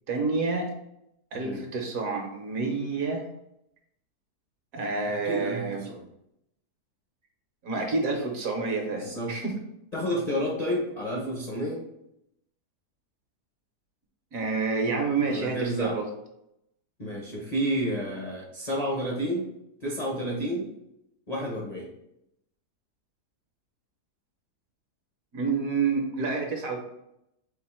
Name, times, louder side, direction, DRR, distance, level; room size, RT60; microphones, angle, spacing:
voice 1, 0.1-0.7 1.3-3.3 4.7-5.9 7.6-9.6 14.3-16.1 25.3-26.8, right 4 dB, 60° right, 3 dB, 1.1 m, -28 dB
voice 2, 1.3-1.7 5.1-6.0 8.9-9.3 9.9-11.8 15.2-16.0 17.0-19.5 19.8-20.7 21.3-21.9, equal, 35° left, -3 dB, 0.6 m, -30 dB
4.4 x 2.5 x 4.2 m, 0.80 s
omnidirectional pair, 1.7 m